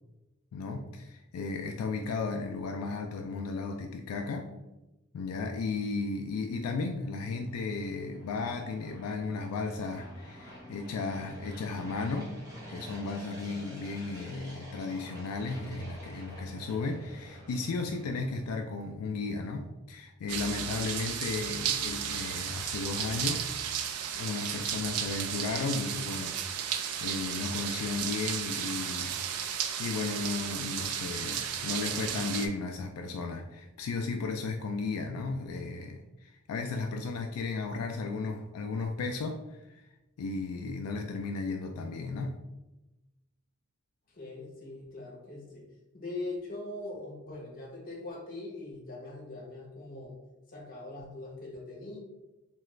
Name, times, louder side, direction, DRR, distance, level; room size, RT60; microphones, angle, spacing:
voice 1, 0.5-4.5 5.1-12.3 12.7-23.4 24.2-26.4 26.6-29.2 29.8-39.6 40.2-42.4, left 4 dB, 80° left, 3 dB, 0.3 m, -35 dB
sound 1, 6.3-18.6, equal, 15° right, 0.7 m, -49 dB
sound 2, 15.3-21.9, equal, 60° right, 1.1 m, -50 dB
sound 3, 20.3-32.5, right 8 dB, 85° right, 0.3 m, -34 dB
voice 2, 44.1-45.6 45.9-50.2 50.5-52.0, left 2 dB, 40° left, -3 dB, 0.9 m, -41 dB
3.0 x 2.4 x 3.1 m, 1.0 s
head